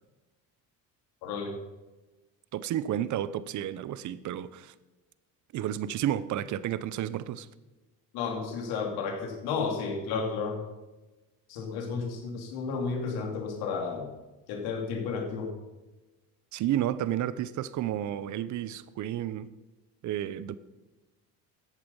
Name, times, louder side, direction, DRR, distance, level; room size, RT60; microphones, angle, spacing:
voice 1, 1.2-1.5 8.1-10.6 11.5-14.1 14.5-15.5, left 5 dB, 85° left, 2.7 m, -32 dB
voice 2, 2.5-4.7 5.5-7.5 16.5-19.5 20.0-20.6, right 11 dB, 55° right, 0.8 m, -31 dB
13.5 x 8.6 x 5.5 m
cardioid pair, 125°, 36 cm